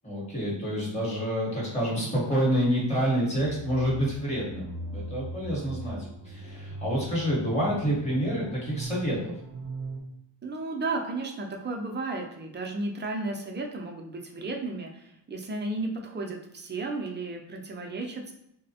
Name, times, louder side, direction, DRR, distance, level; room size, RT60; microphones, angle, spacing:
voice 1, 0.0-9.3, equal, 15° left, -5 dB, 1.0 m, -28 dB
sound 1, 3.3-10.0, right 2 dB, 65° right, 0.7 m, -39 dB
voice 2, 10.4-18.3, right 2 dB, 25° right, 1 dB, 0.4 m, -33 dB
3.3 x 2.0 x 2.7 m, 0.74 s
wide cardioid pair, 105°, 47 cm